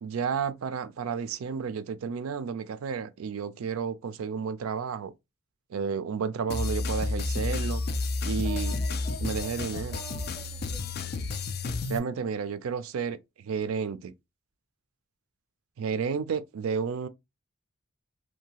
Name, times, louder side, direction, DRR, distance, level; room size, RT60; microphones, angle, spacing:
voice 1, 0.0-5.1 5.7-7.8 8.2-8.7 9.2-10.0 11.9-14.1 15.8-17.1, right 6 dB, 90° right, 0.4 m, -31 dB
sound 1, 6.5-12.0, left 3 dB, 50° left, 0.3 m, -31 dB
voice 2, 8.4-10.9, left 1 dB, 20° left, 0.8 m, -45 dB
2.7 x 2.2 x 2.8 m
head